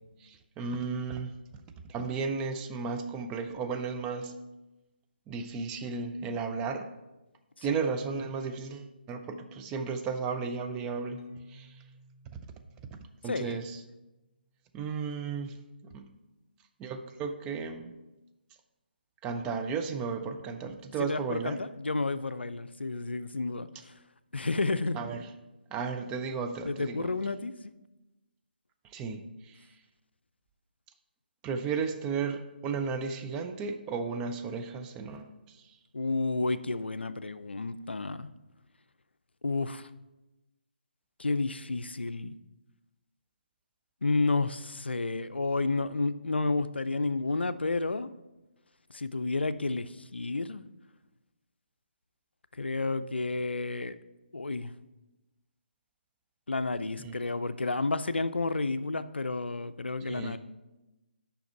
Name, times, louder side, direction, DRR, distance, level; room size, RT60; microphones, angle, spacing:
voice 1, 0.2-1.3 1.9-4.4 5.3-6.9 7.6-11.8 12.3-12.4 13.2-13.8 14.7-15.6 15.8-16.1 16.8-17.9 19.2-21.6 24.9-25.3 25.7-27.1 28.8-29.7 31.4-35.7 57.0-57.2 60.1-60.4, right 5 dB, 15° right, 6 dB, 0.3 m, -34 dB
Keyboard (musical), 11.2-14.9, equal, 40° left, 1.0 m, -58 dB
voice 2, 13.3-13.6 21.0-23.7 24.3-25.0 26.7-27.5 35.9-38.3 39.4-39.9 41.2-42.3 44.0-48.1 48.9-50.6 52.5-54.0 54.3-54.7 56.5-60.4, left 3 dB, 85° left, 13 dB, 0.4 m, -31 dB
7.0 x 5.3 x 4.4 m, 1.0 s
figure-of-eight pair, 150°, 6 cm